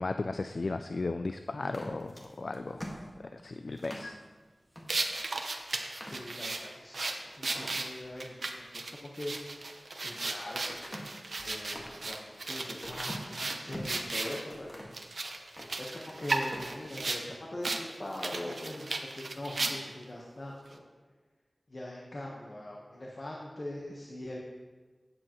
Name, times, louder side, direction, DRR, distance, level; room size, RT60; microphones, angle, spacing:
voice 1, 0.0-2.9 3.3-4.2, left 3 dB, 70° left, 8 dB, 0.3 m, -35 dB
sound 1, 1.6-4.1 4.7-4.9 5.3-5.4 5.8-6.8 7.2-7.7 9.5-10.2 10.7-14.0 14.5-15.0 15.4-16.2 16.5-16.8, equal, 20° left, 1.7 m, -45 dB
sound 2, 4.9-14.4 14.9-17.2 17.6-17.8 18.1-20.0, right 2 dB, 75° right, 0.7 m, -35 dB
voice 2, 6.1-10.6 11.4-14.7 15.8-18.9 19.1-20.8 21.7-24.4, left 1 dB, 50° left, -2 dB, 1.2 m, -42 dB
11.5 x 7.8 x 3.0 m, 1.4 s
wide cardioid pair, 60°, 0 cm